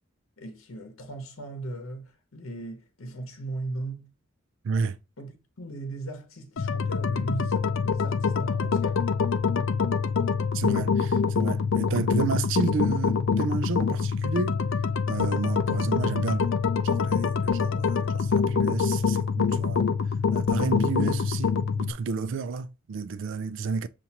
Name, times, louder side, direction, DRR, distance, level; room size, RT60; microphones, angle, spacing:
voice 1, 0.4-4.1 5.2-9.0, right 2 dB, 90° left, 0.9 m, -38 dB
voice 2, 4.6-5.0 10.5-14.6 15.1-16.5 16.8-19.9 20.3-23.9, right 5 dB, 65° right, 0.4 m, -31 dB
sound 1, 6.6-21.9, left 5 dB, 65° left, 0.4 m, -25 dB
6.9 x 2.5 x 2.8 m
head